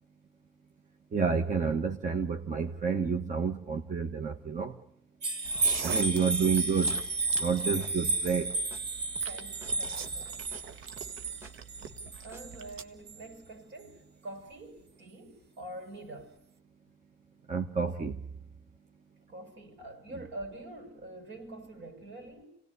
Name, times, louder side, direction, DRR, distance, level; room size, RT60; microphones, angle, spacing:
voice 1, 1.1-4.7 5.8-7.0 7.4-8.5 17.5-18.2, right 6 dB, 40° right, 1.3 m, -29 dB
sound 1, 5.2-12.5 13.1-13.2, right 3 dB, 55° right, 1.6 m, -32 dB
sound 2, 5.4-12.8, right 7 dB, 90° right, 1.3 m, -44 dB
sound 3, 5.5-5.7 6.0-6.1 6.4-6.6 6.9-7.0 7.3-7.6 7.8-7.9 8.2-8.5 8.7-8.8 9.2-9.4 9.6-9.7 10.1-10.3 10.5-10.6 11.0-11.5 11.9-12.1 12.3-12.4, equal, 15° right, 2.3 m, -51 dB
voice 2, 9.2-10.6 12.2-16.4 19.3-22.5, right 1 dB, 75° right, 7.0 m, -45 dB
27.0 x 18.0 x 9.7 m
cardioid pair, 90°, 20 cm